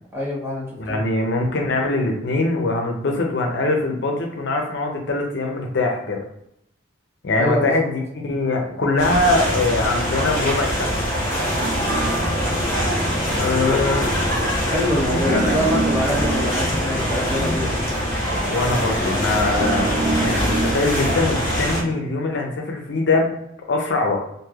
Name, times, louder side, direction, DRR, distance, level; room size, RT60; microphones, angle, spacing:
voice 1, 0.1-1.0 7.4-7.7 14.7-17.8, equal, 15° right, -5 dB, 1.0 m, -25 dB
voice 2, 0.8-6.2 7.2-11.0 13.4-14.1 15.1-15.7 18.5-23.3 23.7-24.2, left 2 dB, 65° left, 1 dB, 0.6 m, -22 dB
sound 1, 9.0-21.8, equal, 25° left, 1.3 m, -23 dB
sound 2, 11.6-22.0, right 2 dB, 50° right, 0.4 m, -30 dB
3.1 x 2.5 x 2.3 m, 0.78 s
head